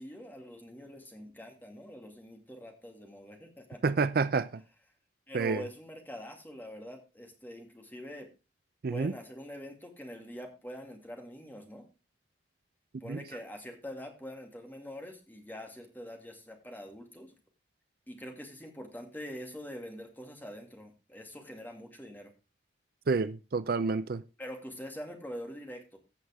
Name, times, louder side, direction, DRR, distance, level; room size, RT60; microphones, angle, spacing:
voice 1, 0.0-3.8 5.3-8.3 8.9-11.9 13.0-17.3 18.1-22.3 24.4-26.0, equal, 10° left, 2.4 m, -44 dB
voice 2, 3.8-4.6 5.3-5.6 8.8-9.1 13.1-13.2 23.1-24.2, right 4 dB, 55° right, 0.4 m, -29 dB
15.5 x 6.4 x 3.5 m
head